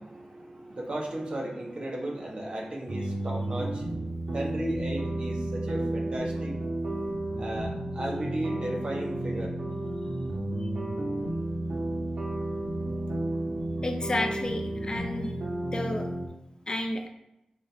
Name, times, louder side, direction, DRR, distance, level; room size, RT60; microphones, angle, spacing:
voice 1, 0.0-4.0 4.3-6.6 7.4-9.5, right 1 dB, 45° right, 0 dB, 1.4 m, -35 dB
sound 1, 2.9-16.3, right 1 dB, 80° right, 1.6 m, -32 dB
voice 2, 13.8-15.3 15.7-16.1 16.7-17.1, left 1 dB, 35° left, 3 dB, 0.8 m, -31 dB
6.5 x 3.8 x 4.6 m, 0.87 s
wide cardioid pair, 90°, 2 cm